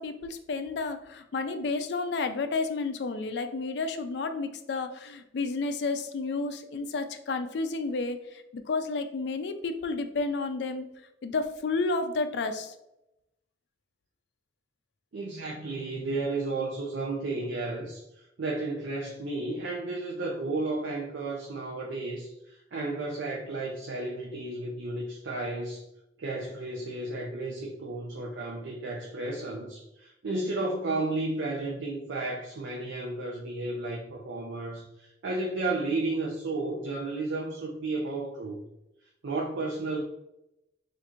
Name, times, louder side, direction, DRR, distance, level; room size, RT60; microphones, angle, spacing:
voice 1, 0.0-10.9 11.2-12.7, left 3 dB, 70° left, 8 dB, 0.4 m, -31 dB
voice 2, 15.1-25.8 26.2-38.6 39.2-40.0, right 2 dB, 90° right, -1 dB, 0.5 m, -33 dB
4.3 x 2.5 x 2.5 m, 0.88 s
head